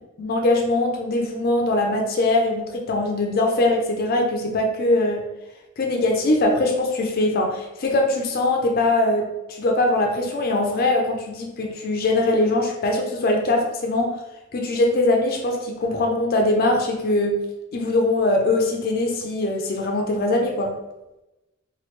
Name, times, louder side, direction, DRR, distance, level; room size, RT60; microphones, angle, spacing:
voice 1, 0.2-5.2 5.8-14.1 14.5-17.4 17.7-20.7, left 2 dB, 45° left, 2 dB, 0.4 m, -22 dB
3.1 x 2.3 x 3.0 m, 0.98 s
head